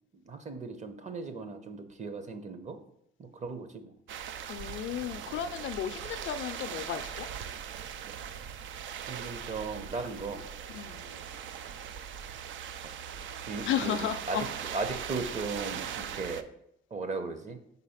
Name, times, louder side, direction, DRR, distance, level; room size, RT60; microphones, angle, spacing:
voice 1, 0.1-2.8 3.2-3.9 9.1-10.4 11.0-11.3 12.8-12.9 13.5-14.5 14.7-16.5 16.9-17.6, right 3 dB, 35° right, 0.9 m, -37 dB
sound 1, 4.1-16.4, right 8 dB, 75° right, 0.5 m, -40 dB
voice 2, 4.5-7.3 10.7-11.1 13.7-14.5, left 10 dB, 75° left, 0.4 m, -34 dB
4.6 x 4.1 x 5.7 m
cardioid pair, 90°, 20 cm